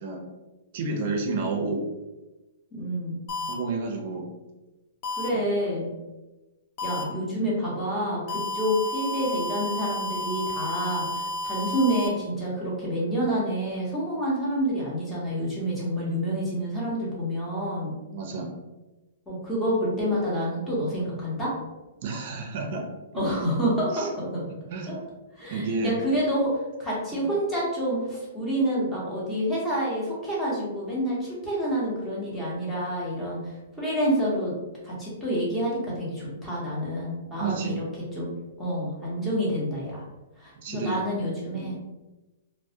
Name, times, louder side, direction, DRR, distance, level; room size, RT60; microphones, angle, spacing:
voice 1, 0.7-1.8 3.5-4.2 18.1-18.5 22.0-22.8 23.9-24.1 24.7-24.9 25.5-25.9 27.1-27.2 37.4-37.8 40.6-41.0 41.5-41.7, right 3 dB, 45° right, 2 dB, 0.5 m, -30 dB
voice 2, 2.7-3.2 5.2-5.9 6.8-17.9 19.3-21.5 23.1-24.4 24.9-25.0 25.4-34.5 34.8-37.8 38.1-38.3 38.6-40.0 40.4-41.7, equal, 5° left, -7 dB, 0.8 m, -28 dB
sound 1, 3.3-3.5 5.0-5.3 6.8-7.0 8.3-12.1, left 1 dB, 35° left, 0.4 m, -31 dB
2.2 x 2.1 x 2.7 m, 1.1 s
hypercardioid pair, 160°, 0 cm